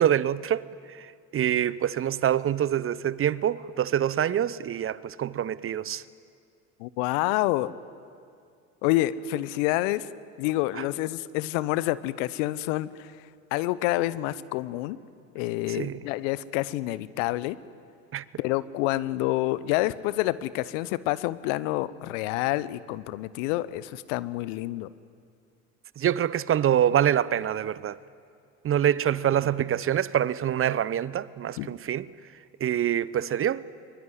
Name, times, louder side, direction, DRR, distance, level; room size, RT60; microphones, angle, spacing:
voice 1, 0.0-6.0 15.7-16.0 18.1-18.2 26.0-28.0 28.6-32.1 32.6-33.6, right 10 dB, 30° right, 0.8 m, -25 dB
voice 2, 6.8-7.7 8.8-10.1 10.4-15.0 15.3-17.6 18.4-24.9 31.6-31.8, left 16 dB, 60° left, 1.0 m, -28 dB
23.5 x 23.5 x 9.5 m
hypercardioid pair, 65°, 42 cm